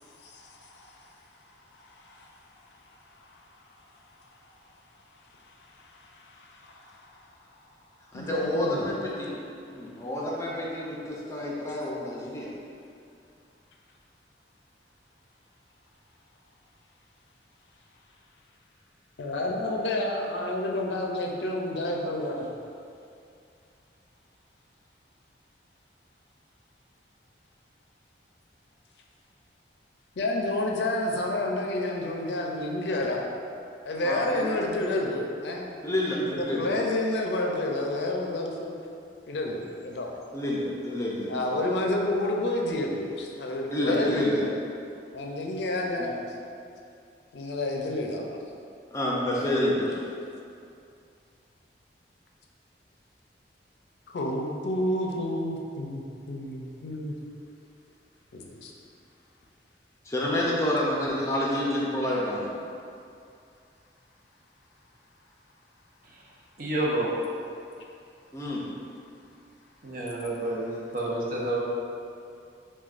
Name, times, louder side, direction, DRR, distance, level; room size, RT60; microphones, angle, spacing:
voice 1, 0.2-0.9 1.9-2.3 5.8-7.2 8.1-8.9 19.2-22.5 30.2-33.2 33.9-35.7 36.2-38.7 39.3-40.1 41.3-44.5 45.1-46.2 47.3-48.2 54.1-57.1 58.3-58.7, left 1 dB, 70° left, 0 dB, 0.4 m, -29 dB
voice 2, 8.1-9.4 9.7-12.5 34.0-34.5 35.8-36.7 40.3-41.5 43.7-44.4 46.0-46.1 48.9-49.9 60.1-62.5 68.3-68.6, left 1 dB, 15° left, -4 dB, 0.5 m, -29 dB
voice 3, 66.6-67.1 69.8-71.6, right 1 dB, 50° right, -4 dB, 0.6 m, -29 dB
6.1 x 2.2 x 2.5 m, 2.5 s
head